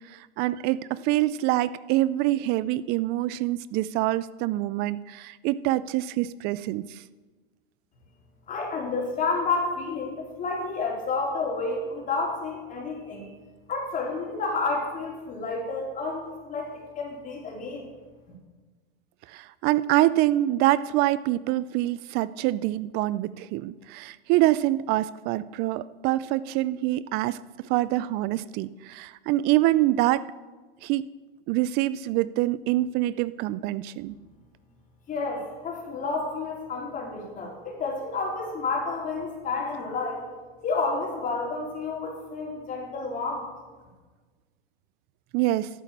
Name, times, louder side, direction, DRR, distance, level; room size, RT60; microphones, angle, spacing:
voice 1, 0.1-7.0 19.3-27.4 27.7-30.3 30.8-31.1 31.5-34.2 45.3-45.7, right 15 dB, 35° right, 18 dB, 0.4 m, -25 dB
voice 2, 8.5-13.3 13.7-16.7 17.0-17.9 35.1-40.2 40.6-43.5, left 3 dB, 25° left, -1 dB, 3.9 m, -30 dB
12.5 x 8.1 x 7.2 m, 1.3 s
hypercardioid pair, 120°, 30 cm